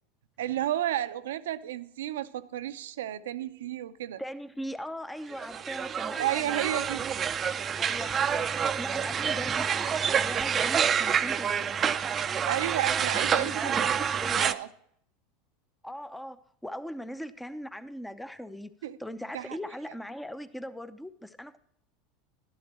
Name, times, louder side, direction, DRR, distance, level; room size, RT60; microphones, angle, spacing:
voice 1, 0.4-4.2 6.2-7.0 12.2-13.9 14.3-14.7 18.8-19.0 19.3-19.6, right 12 dB, 80° right, 0.6 m, -32 dB
voice 2, 4.2-6.9 7.8-11.8 13.1-14.6 15.8-18.7 19.0-21.6, equal, 5° left, 0.7 m, -40 dB
sound 1, 5.3-14.5, right 7 dB, 30° right, 0.5 m, -28 dB
12.5 x 11.0 x 3.0 m
hypercardioid pair, 100°, 0 cm